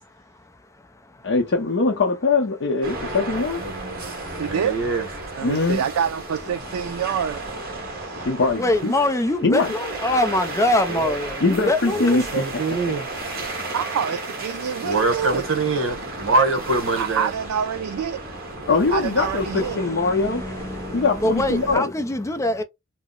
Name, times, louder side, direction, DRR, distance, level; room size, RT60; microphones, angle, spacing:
voice 1, 0.3-1.3 3.9-4.4 7.8-8.3 8.6-12.3 13.0-13.7 18.6-18.7 19.4-22.6, left 2 dB, 15° left, 0.4 m, -25 dB
voice 2, 1.2-3.6 5.4-5.8 8.2-8.9 9.4-9.7 11.4-12.6 13.7-13.8 18.7-20.4 20.9-21.9, left 3 dB, 60° left, 0.6 m, -22 dB
sound 1, 2.8-21.8, right 2 dB, 45° right, 1.3 m, -34 dB
voice 3, 3.6-4.0 4.4-5.1 10.9-11.1 12.0-13.1 14.8-17.3, right 3 dB, 65° right, 1.0 m, -24 dB
voice 4, 4.4-4.8 5.4-7.4 7.9-8.3 13.7-15.5 17.0-18.2 18.9-19.8, right 8 dB, 85° right, 0.3 m, -27 dB
2.9 x 2.0 x 3.7 m
head